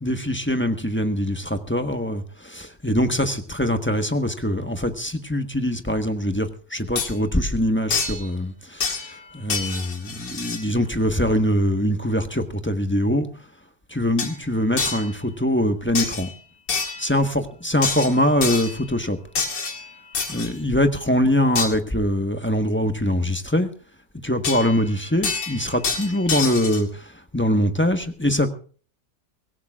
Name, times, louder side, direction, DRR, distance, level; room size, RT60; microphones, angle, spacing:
voice 1, 0.0-13.3 13.9-16.3 17.0-19.2 20.3-23.7 24.2-28.5, left 1 dB, 10° left, 7 dB, 1.1 m, -23 dB
sound 1, 7.0-7.1 7.9-8.3 8.8-9.2 9.5-10.7 14.2-14.4 14.8-15.1 16.0-16.3 16.7-17.1 17.8-18.8 19.4-20.5 21.6-21.7 24.4-24.9 25.2-26.8, left 4 dB, 85° left, 2.8 m, -27 dB
24.5 x 17.0 x 2.4 m, 0.41 s
omnidirectional pair, 1.8 m